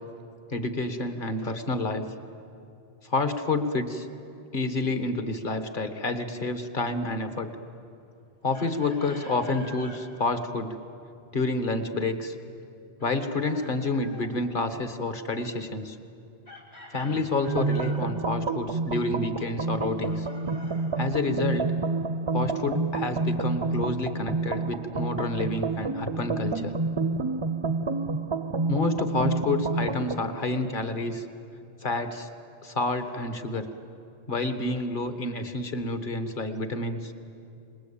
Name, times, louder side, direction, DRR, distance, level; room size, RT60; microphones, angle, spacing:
voice 1, 0.5-2.1 3.0-4.1 4.5-7.5 8.4-10.8 11.3-12.3 13.0-16.0 16.9-20.3 21.0-21.7 22.3-26.7 28.7-31.2 31.8-32.3 32.6-33.7 34.3-37.1, left 2 dB, 55° left, 8 dB, 1.6 m, -29 dB
Chicken rooster, 8.5-10.0 13.0-14.4 16.5-18.1 20.0-21.5, left 1 dB, 85° left, 4.0 m, -47 dB
sound 1, 17.5-30.2, right 3 dB, 35° right, 0.6 m, -29 dB
27.0 x 20.5 x 8.7 m, 2.6 s
omnidirectional pair, 1.0 m